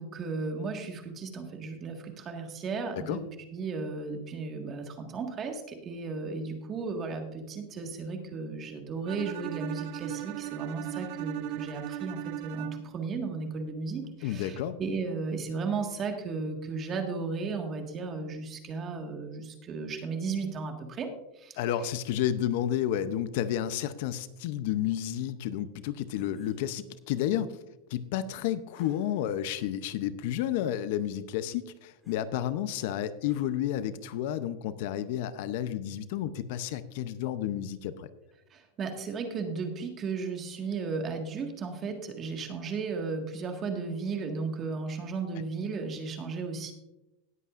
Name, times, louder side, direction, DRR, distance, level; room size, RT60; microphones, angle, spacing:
voice 1, 0.0-3.2 3.5-21.1 21.3-21.6 38.5-46.7, right 4 dB, 25° right, 4 dB, 1.7 m, -35 dB
Bowed string instrument, 9.1-13.0, right 16 dB, 55° right, 0.7 m, -38 dB
voice 2, 14.2-14.8 21.6-27.6 27.9-38.1, left 11 dB, 60° left, 13 dB, 0.6 m, -31 dB
sound 1, 26.1-26.6 28.7-29.4 30.1-30.2 32.0-32.2 33.2-33.5, equal, ahead, 2.7 m, -55 dB
19.0 x 8.3 x 2.5 m, 0.95 s
supercardioid pair, 150°, 0 cm